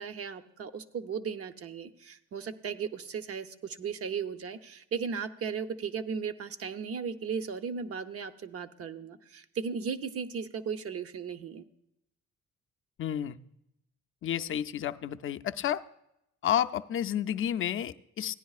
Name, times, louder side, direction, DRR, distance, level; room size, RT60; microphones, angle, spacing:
voice 1, 0.0-11.6, right 6 dB, 50° right, 10 dB, 0.7 m, -36 dB
voice 2, 13.0-13.4 14.2-15.8 16.4-18.3, left 10 dB, 45° left, 8 dB, 0.5 m, -31 dB
16.0 x 10.0 x 2.4 m, 0.81 s
cardioid pair, 90°, 30 cm